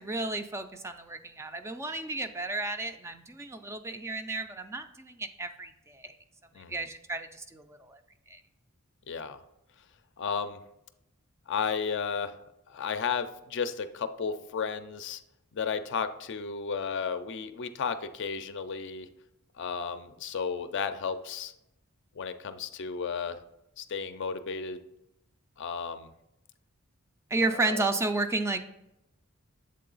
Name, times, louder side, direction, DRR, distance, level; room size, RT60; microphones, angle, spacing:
voice 1, 0.0-6.2 6.6-8.0 8.3-8.4 27.3-28.6, right 2 dB, 15° right, 8 dB, 0.3 m, -32 dB
voice 2, 6.5-6.9 9.1-9.4 10.2-10.6 11.5-12.4 12.7-15.2 15.5-19.1 19.6-21.5 22.1-23.4 23.8-24.8 25.6-26.1 27.5-27.8, left 6 dB, 60° left, 10 dB, 0.4 m, -33 dB
7.6 x 3.7 x 3.9 m, 0.85 s
head